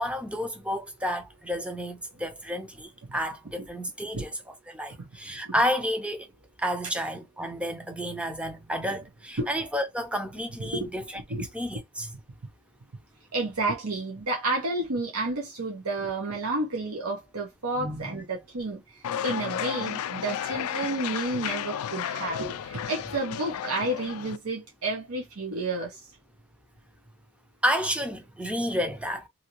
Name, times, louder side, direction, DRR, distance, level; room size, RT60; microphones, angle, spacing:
voice 1, 0.0-4.3 4.7-6.3 6.6-11.0 11.5-12.1 17.8-18.2 27.6-29.3, equal, 5° right, 0.4 m, -30 dB
voice 2, 13.3-18.8 19.2-26.0, right 2 dB, 85° right, 0.9 m, -31 dB
sound 1, 19.0-24.4, left 9 dB, 80° left, 0.3 m, -33 dB
2.7 x 2.7 x 2.9 m
head